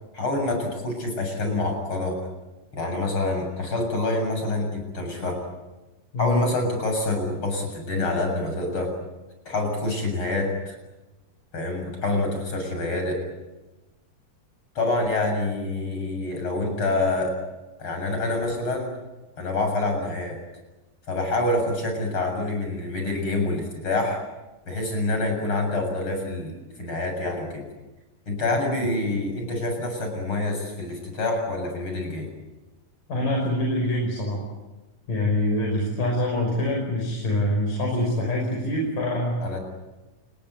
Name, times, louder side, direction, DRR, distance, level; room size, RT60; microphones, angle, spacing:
voice 1, 0.1-2.2 2.7-5.4 6.2-9.0 9.5-10.8 11.5-13.3 14.7-17.4 17.8-18.9 19.4-20.4 21.1-24.2 24.7-27.6 28.3-32.3 39.4-39.6, left 2 dB, 40° left, 3 dB, 8.2 m, -26 dB
voice 2, 33.1-34.4 35.1-39.4, left 1 dB, 75° left, 0 dB, 7.2 m, -25 dB
29.0 x 20.5 x 9.5 m, 1.1 s
omnidirectional pair, 3.8 m